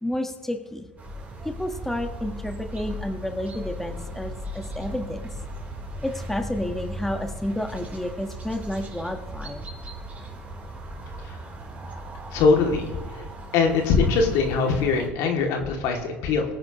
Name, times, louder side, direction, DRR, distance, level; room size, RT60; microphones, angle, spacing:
voice 1, 0.0-0.8 1.4-5.2 6.0-9.7, left 1 dB, 5° left, 5 dB, 1.4 m, -30 dB
sound 1, 1.0-15.1, right 1 dB, 25° right, 3.8 m, -37 dB
voice 2, 12.3-13.2 13.5-16.4, left 4 dB, 65° left, 2 dB, 2.5 m, -22 dB
22.5 x 9.3 x 3.1 m, 1.3 s
hypercardioid pair, 85°, 6 cm